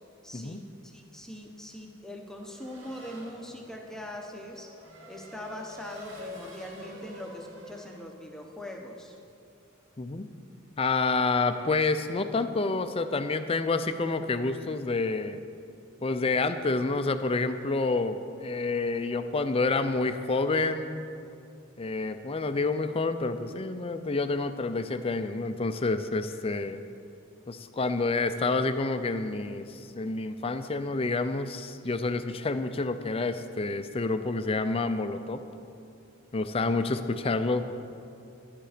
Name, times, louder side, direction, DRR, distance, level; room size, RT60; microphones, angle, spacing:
voice 1, 0.2-4.7 5.1-9.1, left 1 dB, 5° left, 1 dB, 0.9 m, -42 dB
Race car auto racing / Accelerating revving vroom, 2.3-8.0, left 1 dB, 65° right, 2.7 m, -47 dB
voice 2, 10.0-10.3 10.8-15.4 16.0-21.1 21.8-26.8 27.5-35.4 36.3-37.7, left 3 dB, 30° left, 9 dB, 0.5 m, -28 dB
12.0 x 10.5 x 5.0 m, 2.6 s
head